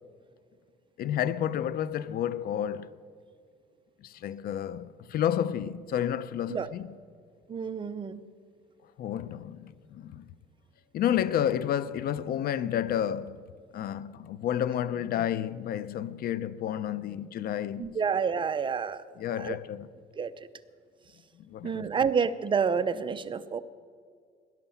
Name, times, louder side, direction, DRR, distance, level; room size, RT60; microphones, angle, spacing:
voice 1, 1.0-2.9 4.0-6.9 9.0-10.3 10.9-13.5 13.7-17.9 19.2-19.9 21.5-21.9, left 10 dB, 60° left, 0.7 m, -30 dB
voice 2, 7.5-8.2 17.8-19.0 19.4-19.6 20.2-20.3 21.6-23.6, right 6 dB, 30° right, 0.8 m, -29 dB
18.0 x 11.0 x 7.3 m
cardioid pair, 110°, 17 cm